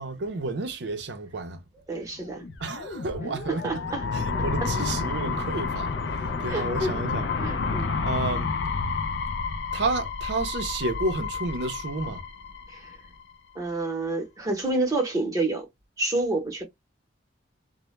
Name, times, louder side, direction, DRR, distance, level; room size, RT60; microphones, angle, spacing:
voice 1, 0.0-1.6 2.6-3.8 4.1-7.3 8.0-8.5 9.7-12.2, right 3 dB, 60° right, 0.5 m, -31 dB
voice 2, 1.9-2.4 3.5-4.0 4.6-4.7 6.5-6.9 7.4-7.9 12.7-13.0 13.5-15.7 16.0-16.6, right 2 dB, 20° right, 0.7 m, -28 dB
sound 1, 2.3-13.2, left 4 dB, 65° left, 0.3 m, -30 dB
2.1 x 2.0 x 3.0 m
head